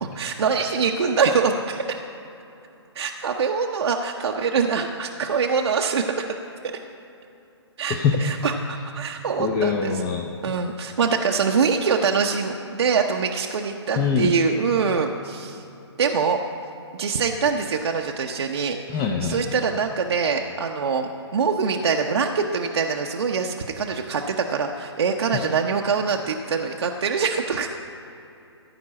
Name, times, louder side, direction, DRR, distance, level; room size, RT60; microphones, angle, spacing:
voice 1, 0.0-2.0 2.9-6.3 7.8-10.0 10.4-15.6 16.0-16.4 17.0-27.8, right 5 dB, 70° right, 2 dB, 0.8 m, -24 dB
voice 2, 7.9-8.2 9.4-10.4 13.9-14.4 18.9-19.4 25.3-25.5, left 6 dB, 20° left, 1 dB, 0.7 m, -23 dB
14.5 x 5.3 x 8.6 m, 2.9 s
hypercardioid pair, 140°, 15 cm